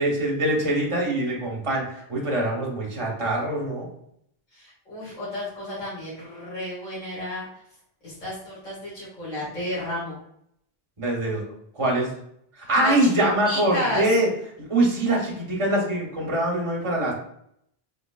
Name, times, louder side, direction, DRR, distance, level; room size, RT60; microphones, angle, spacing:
voice 1, 0.0-3.9 11.0-11.4 11.7-12.1 12.6-14.3 14.6-17.1, right 1 dB, 30° right, -2 dB, 1.1 m, -23 dB
voice 2, 4.5-7.5 8.0-10.2 12.8-12.9 13.4-14.1, left 1 dB, 50° left, -10 dB, 1.8 m, -32 dB
3.7 x 3.5 x 2.2 m, 0.70 s
omnidirectional pair, 1.0 m